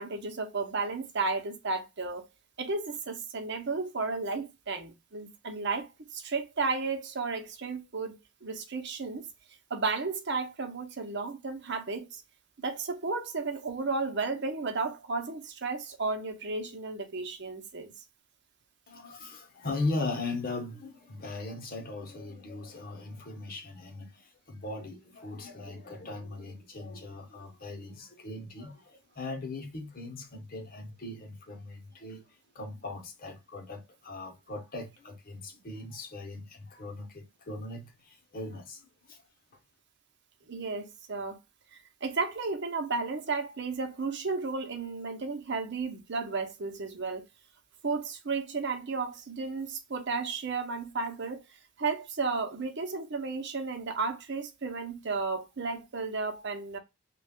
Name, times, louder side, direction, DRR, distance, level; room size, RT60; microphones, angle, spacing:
voice 1, 0.0-2.3 2.6-9.3 9.7-12.2 12.6-17.9 40.5-41.4 42.0-47.2 47.8-51.4 51.8-56.8, right 4 dB, 50° right, 0.8 m, -33 dB
voice 2, 18.9-32.2 32.5-39.2, left 2 dB, 40° left, 0.9 m, -39 dB
3.1 x 2.3 x 3.5 m
head